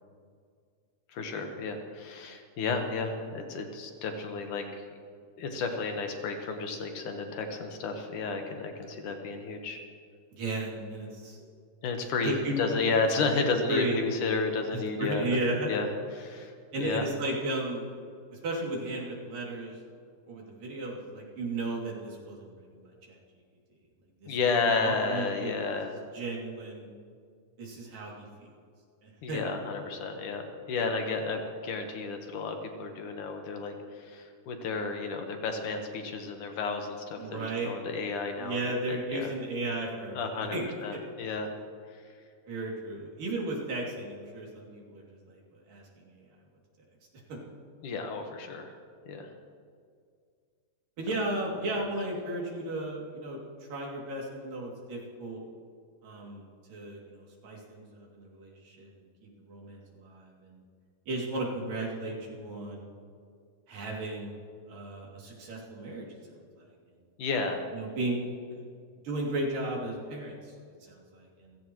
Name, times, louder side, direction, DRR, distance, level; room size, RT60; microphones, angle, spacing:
voice 1, 1.1-4.6 5.4-9.8 11.4-11.5 11.8-15.4 15.6-15.9 16.2-17.0 24.3-25.9 29.2-30.4 30.7-39.3 40.1-41.5 47.8-48.7 49.1-49.3 67.2-67.6, left 4 dB, 70° left, 4 dB, 2.8 m, -32 dB
voice 2, 10.3-11.4 12.2-12.6 13.7-14.0 14.7-15.7 16.7-17.9 18.3-19.7 20.3-23.2 24.2-24.4 24.8-25.5 26.1-26.9 27.6-28.5 29.0-29.5 37.2-37.7 38.4-40.2 40.5-41.0 42.5-45.4 45.7-46.2 51.0-53.4 53.7-55.4 56.0-58.9 59.2-60.6 61.1-62.9 63.7-64.3 64.7-66.2 66.6-66.7 67.7-68.2 68.5-68.6 69.0-70.5 70.8-71.6, right 2 dB, 80° right, -2 dB, 4.5 m, -35 dB
28.0 x 16.0 x 3.1 m, 2.2 s
omnidirectional pair, 3.8 m